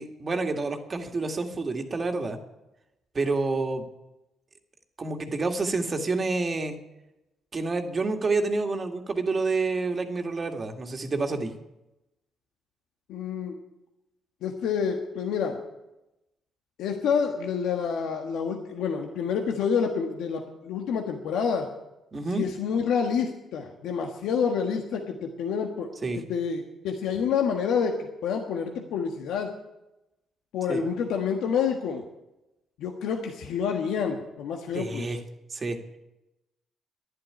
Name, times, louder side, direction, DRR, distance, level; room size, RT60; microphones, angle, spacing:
voice 1, 0.0-2.4 3.1-3.8 5.0-6.8 7.5-11.5 22.1-22.5 26.0-26.2 30.7-30.8 34.7-35.2 35.5-35.8, right 3 dB, 35° right, 5 dB, 1.9 m, -28 dB
voice 2, 13.1-13.5 14.4-15.6 16.8-21.7 22.3-29.5 30.5-32.0 32.8-35.1, left 6 dB, 85° left, 3 dB, 1.4 m, -28 dB
11.5 x 11.0 x 9.7 m, 0.95 s
cardioid pair, 90°, 0 cm